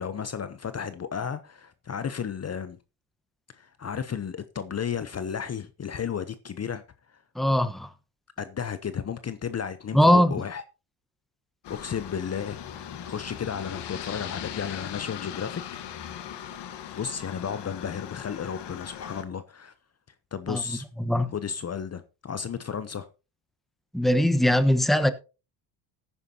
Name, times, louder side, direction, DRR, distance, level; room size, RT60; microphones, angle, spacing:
voice 1, 0.0-2.8 3.5-6.8 7.1-7.2 8.4-10.6 11.7-12.6 12.9-16.1 16.9-19.7 20.3-20.9 21.3-23.1, left 7 dB, 35° left, 0.9 m, -33 dB
voice 2, 7.3-7.9 9.9-10.3 20.5-20.6 21.0-21.3 23.9-25.1, equal, ahead, 1.1 m, -21 dB
Aircraft, 11.6-19.2, left 9 dB, 65° left, 1.6 m, -39 dB
15.0 x 9.9 x 2.9 m
supercardioid pair, 70°, 45 cm